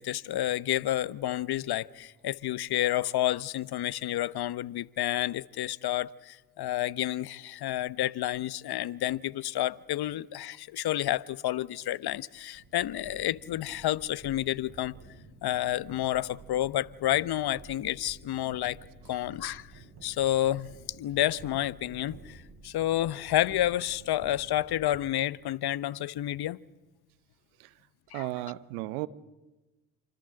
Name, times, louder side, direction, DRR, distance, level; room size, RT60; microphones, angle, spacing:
voice 1, 0.0-15.0 15.4-18.8 19.1-19.7 20.0-26.6 28.1-28.3, left 13 dB, 60° left, 1.0 m, -30 dB
sound 1, 12.5-25.0, right 4 dB, 55° right, 7.7 m, -51 dB
voice 2, 28.1-29.1, right 18 dB, 85° right, 1.0 m, -34 dB
28.0 x 25.0 x 7.8 m
hypercardioid pair, 55°, 44 cm